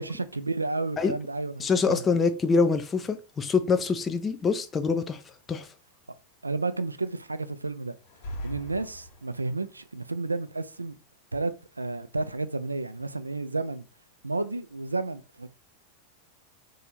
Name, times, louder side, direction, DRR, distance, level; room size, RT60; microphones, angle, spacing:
voice 1, 0.0-2.0 6.4-7.9 8.4-11.0 11.3-13.9 14.2-15.5, right 3 dB, 80° right, 0.4 m, -31 dB
voice 2, 1.6-5.2 5.5-5.7, left 4 dB, 20° left, 0.4 m, -25 dB
sound 1, 8.0-9.7, left 1 dB, 50° left, 1.3 m, -40 dB
4.3 x 2.8 x 4.1 m
figure-of-eight pair, 90°, 0 cm